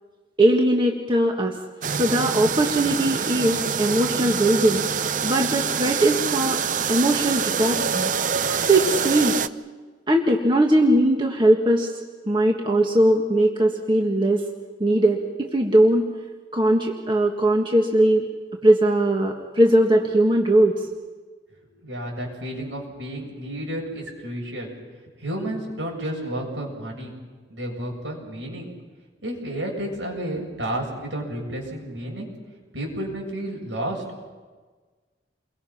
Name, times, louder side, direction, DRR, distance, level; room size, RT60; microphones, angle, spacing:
voice 1, 0.4-1.6 1.9-4.8 5.2-6.6 6.9-8.1 8.6-9.4 10.1-11.9 12.3-14.4 14.8-16.0 16.5-18.3 18.6-20.9, right 1 dB, 25° right, 1 dB, 1.8 m, -20 dB
sound 1, 1.8-9.5, right 6 dB, 45° right, 0.6 m, -25 dB
voice 2, 21.7-24.7 25.2-27.1 27.5-28.7 29.2-32.3 32.7-34.0, right 1 dB, 80° right, -1 dB, 7.9 m, -31 dB
29.5 x 23.0 x 5.9 m, 1.4 s
head